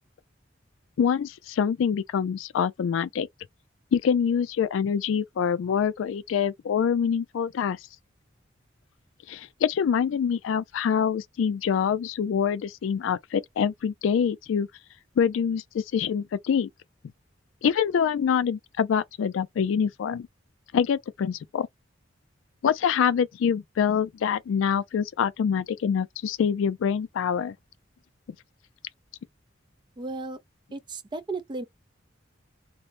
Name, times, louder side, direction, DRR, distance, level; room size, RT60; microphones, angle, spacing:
voice 1, 1.0-3.3 3.9-7.8 9.3-14.7 15.2-16.7 17.6-20.3 20.7-21.7 22.6-27.5, left 7 dB, 75° left, 0.3 m, -25 dB
voice 2, 30.0-30.4 30.7-31.6, right 3 dB, 25° right, 0.4 m, -34 dB
2.5 x 2.0 x 3.1 m
head